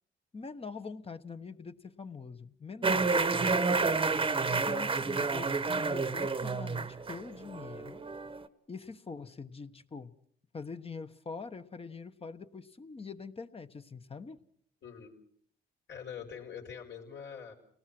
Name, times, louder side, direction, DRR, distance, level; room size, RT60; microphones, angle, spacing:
voice 1, 0.3-3.1 4.5-8.0 8.7-10.1 10.5-14.4, left 4 dB, 30° left, 9 dB, 1.3 m, -44 dB
sound 1, 2.8-8.5, right 4 dB, 25° right, 1.2 m, -30 dB
voice 2, 3.1-4.7 14.8-15.1 15.9-17.5, left 7 dB, 65° left, 1 dB, 5.2 m, -45 dB
29.5 x 19.0 x 6.1 m, 0.63 s
cardioid pair, 90°, 20 cm